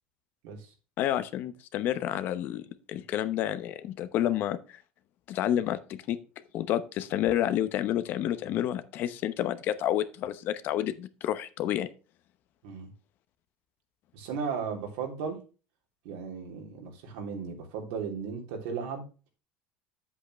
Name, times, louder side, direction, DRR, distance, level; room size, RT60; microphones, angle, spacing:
voice 1, 1.0-4.6 5.3-6.2 6.5-11.9, left 11 dB, 55° left, 12 dB, 0.9 m, -29 dB
voice 2, 14.1-15.4 16.0-19.0, right 6 dB, 90° right, 1 dB, 3.2 m, -35 dB
8.6 x 8.0 x 3.2 m, 0.33 s
cardioid pair, 140°, 4 cm